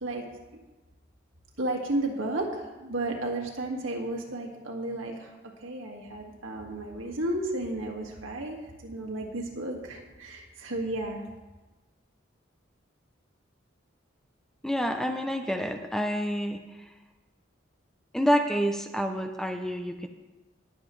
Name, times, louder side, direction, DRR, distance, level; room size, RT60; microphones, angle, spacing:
voice 1, 1.6-5.3 5.6-11.2, right 2 dB, 80° right, 0 dB, 1.9 m, -33 dB
voice 2, 14.6-16.6 18.1-20.1, equal, ahead, 5 dB, 0.5 m, -28 dB
20.0 x 7.5 x 3.2 m, 1.2 s
head